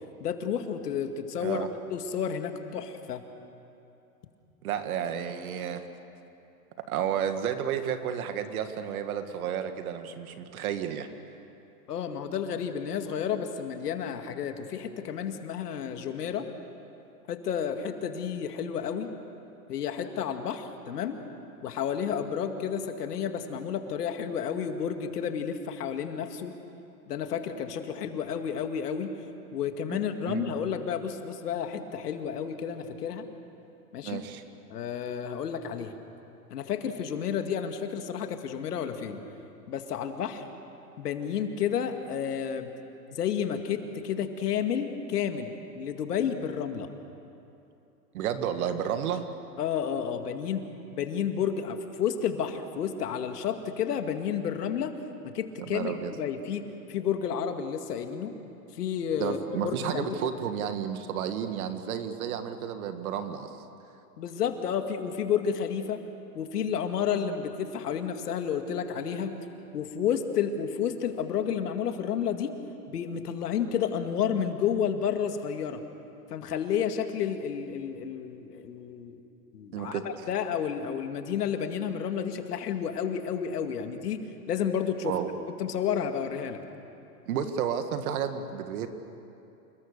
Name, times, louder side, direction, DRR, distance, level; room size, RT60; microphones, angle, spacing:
voice 1, 0.2-3.2 11.9-16.5 17.3-19.1 19.7-21.2 21.6-26.5 27.1-29.1 29.5-33.3 33.9-34.2 34.7-35.9 36.5-39.2 39.7-40.4 41.0-42.7 43.1-46.9 49.6-50.6 50.9-54.9 55.3-58.3 58.7-59.4 59.6-60.3 64.2-66.0 66.3-69.3 69.7-72.5 72.9-75.8 76.3-79.2 79.5-84.2 84.5-85.1 85.6-86.6, left 8 dB, 75° left, 6 dB, 2.3 m, -31 dB
voice 2, 4.6-5.8 6.8-11.1 29.9-30.0 30.3-30.5 34.0-34.4 48.1-49.2 55.6-56.1 59.2-63.5 79.7-80.3 85.0-85.3 87.3-88.9, right 8 dB, 65° right, 8 dB, 2.1 m, -32 dB
28.0 x 20.5 x 6.8 m, 2.7 s
hypercardioid pair, 130°, 47 cm